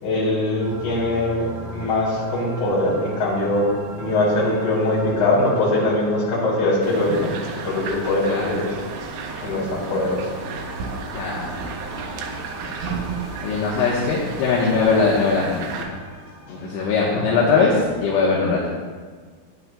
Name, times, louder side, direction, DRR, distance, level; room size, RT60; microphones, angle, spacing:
voice 1, 0.0-3.7 4.0-7.4 7.6-8.7 9.4-10.3 16.5-16.6 17.1-17.2, left 2 dB, 45° left, -6 dB, 4.4 m, -22 dB
sound 1, 0.6-18.0, right 1 dB, 55° right, 1.9 m, -39 dB
sound 2, 6.8-15.8, right 5 dB, 80° right, 3.4 m, -33 dB
voice 2, 11.1-11.6 13.4-15.9 16.5-18.7, left 4 dB, 75° left, -5 dB, 3.5 m, -21 dB
15.0 x 9.9 x 2.3 m, 1.5 s
omnidirectional pair, 6.0 m